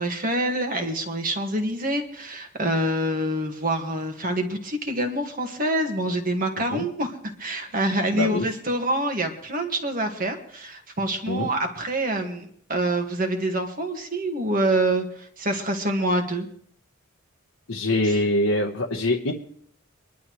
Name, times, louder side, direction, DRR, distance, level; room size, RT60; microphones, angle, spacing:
voice 1, 0.0-16.5 18.0-18.2, right 1 dB, 40° right, 4 dB, 1.7 m, -26 dB
voice 2, 8.1-8.5 11.3-11.5 17.7-19.3, left 1 dB, 75° left, 0 dB, 1.1 m, -24 dB
24.5 x 11.5 x 3.1 m, 0.63 s
head